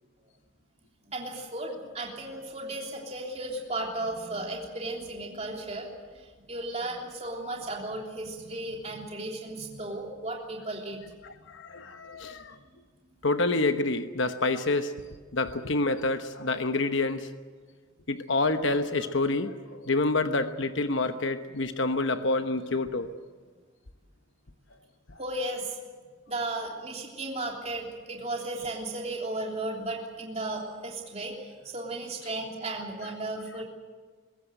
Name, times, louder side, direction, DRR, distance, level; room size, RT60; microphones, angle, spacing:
voice 1, 1.1-5.9 6.1-11.0 25.2-25.8 26.3-33.6, right 2 dB, 30° right, 0 dB, 3.3 m, -35 dB
voice 2, 11.2-12.5 13.2-14.9 15.3-17.3 18.1-23.1, left 2 dB, 60° left, 8 dB, 1.1 m, -27 dB
22.5 x 16.0 x 9.2 m, 1.4 s
head